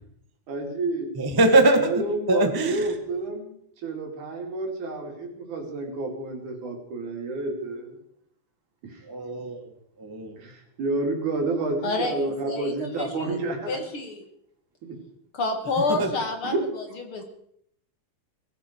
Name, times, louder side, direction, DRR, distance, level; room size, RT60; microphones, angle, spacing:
voice 1, 0.5-1.1 1.7-3.5 3.8-8.0 8.8-9.0 10.4-13.8 14.8-15.0 16.0-16.1 16.4-16.7, right 2 dB, 75° right, 2 dB, 4.3 m, -30 dB
voice 2, 1.2-1.9 2.3-2.8 9.1-9.7 10.0-10.3 16.0-16.1, right 2 dB, 15° right, 5 dB, 0.6 m, -21 dB
voice 3, 11.8-12.2 12.5-13.4 13.7-14.2 15.3-16.8 17.1-17.2, left 3 dB, 50° left, 5 dB, 2.3 m, -29 dB
19.5 x 15.5 x 4.6 m, 0.69 s
omnidirectional pair, 3.5 m